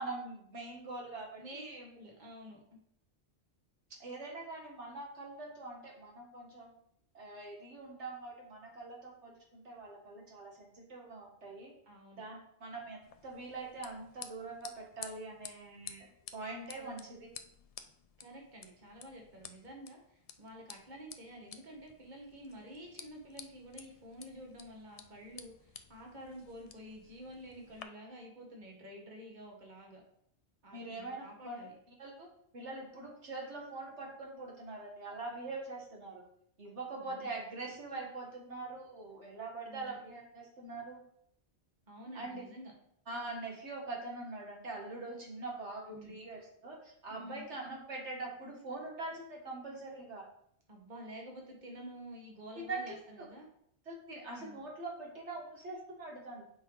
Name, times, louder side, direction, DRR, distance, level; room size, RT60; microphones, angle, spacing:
voice 1, 0.0-1.9 4.0-6.7 7.1-11.7 12.2-17.3 30.7-31.6 32.0-32.3 32.5-36.2 36.6-41.0 42.1-42.4 43.1-50.3 52.6-53.0 53.9-56.4, right 3 dB, 85° right, 0 dB, 2.0 m, -43 dB
voice 2, 1.4-2.6 11.9-12.2 16.7-16.9 18.2-30.0 30.6-31.7 37.0-37.3 39.7-40.0 41.9-42.7 45.9-46.2 47.1-47.5 50.7-53.5 54.4-54.6, equal, 45° right, 0 dB, 1.7 m, -50 dB
sound 1, 13.0-27.8, left 6 dB, 50° left, 0.4 m, -53 dB
7.9 x 5.3 x 4.0 m, 0.70 s
omnidirectional pair, 1.1 m